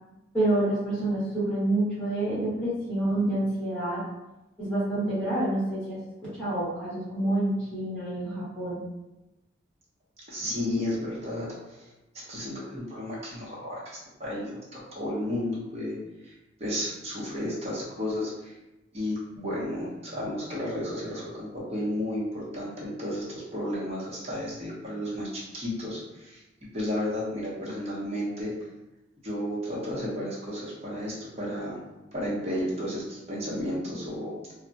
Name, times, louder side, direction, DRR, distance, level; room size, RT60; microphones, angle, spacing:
voice 1, 0.3-4.0 4.6-6.0 6.4-8.8, right 1 dB, 5° left, -12 dB, 1.2 m, -27 dB
voice 2, 10.3-11.9 12.3-16.0 16.2-16.3 16.6-18.5 18.9-26.4 26.7-28.5 29.2-31.8 32.1-34.3, left 1 dB, 35° right, -6 dB, 0.9 m, -32 dB
2.3 x 2.1 x 3.9 m, 1.0 s
head